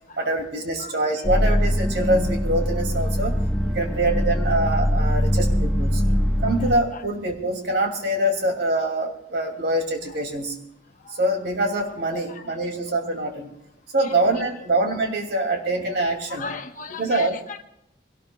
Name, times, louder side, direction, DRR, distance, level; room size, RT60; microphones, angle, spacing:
voice 1, 0.2-3.4 3.7-6.0 6.4-10.6 11.1-13.5 13.9-16.5 17.0-17.4, right 1 dB, 60° right, 3 dB, 2.7 m, -24 dB
sound 1, 1.2-6.7, equal, ahead, 1.2 m, -22 dB
voice 2, 6.6-7.0 10.1-10.2 12.1-12.5 14.0-14.1 16.3-17.6, left 4 dB, 45° left, 5 dB, 1.2 m, -37 dB
22.5 x 18.0 x 2.3 m, 0.79 s
head